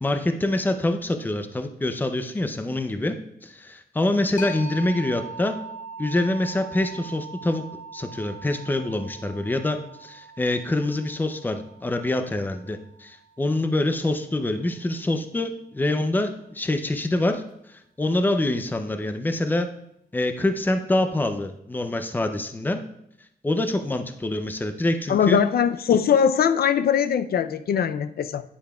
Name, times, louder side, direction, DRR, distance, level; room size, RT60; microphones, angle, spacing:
voice 1, 0.0-3.2 3.4-5.6 6.0-7.6 7.9-19.7 20.1-22.8 23.4-25.4, left 1 dB, 10° left, 7 dB, 0.5 m, -25 dB
sound 1, 4.4-13.8, right 3 dB, 50° left, 0.9 m, -41 dB
voice 2, 25.1-28.4, left 8 dB, 70° left, 12 dB, 0.4 m, -21 dB
9.5 x 8.5 x 2.3 m, 0.75 s
wide cardioid pair, 155°, 17 cm